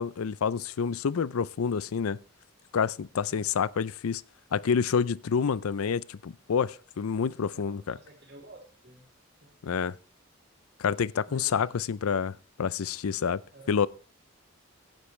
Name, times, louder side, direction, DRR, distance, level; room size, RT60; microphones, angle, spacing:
voice 1, 0.0-2.2 2.7-4.2 4.5-8.0 9.6-9.9 10.8-13.4 13.7-13.9, left 6 dB, 90° left, 0.5 m, -28 dB
voice 2, 7.5-9.0 9.4-9.5 11.3-11.7 13.5-13.8, right 1 dB, 50° right, 3.1 m, -51 dB
15.5 x 9.7 x 3.2 m
head